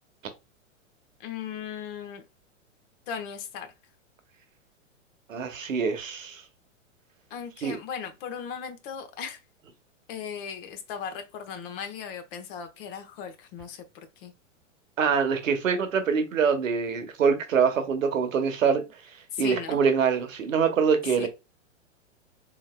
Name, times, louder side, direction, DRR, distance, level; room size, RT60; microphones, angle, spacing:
voice 1, 1.2-2.2 3.1-3.7 7.3-9.4 10.1-13.8 14.2-14.3 19.3-19.8 21.2-21.3, left 7 dB, 45° left, 0.9 m, -37 dB
voice 2, 5.3-6.4 7.6-7.8 15.0-18.8 19.4-21.3, right 6 dB, 85° right, 1.0 m, -24 dB
4.0 x 2.9 x 2.2 m
hypercardioid pair, 120°, 38 cm